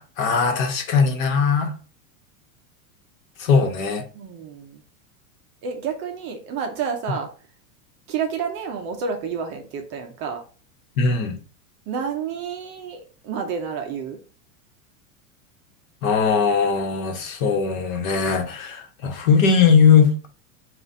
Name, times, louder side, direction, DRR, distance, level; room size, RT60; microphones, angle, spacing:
voice 1, 0.0-1.7 3.4-4.0 11.0-11.4 16.0-20.1, left 6 dB, 70° left, 1.1 m, -19 dB
voice 2, 4.1-4.8 5.6-7.3 8.1-10.4 11.9-14.2, right 6 dB, 30° right, 0.4 m, -29 dB
4.0 x 2.4 x 4.3 m
supercardioid pair, 155°, 43 cm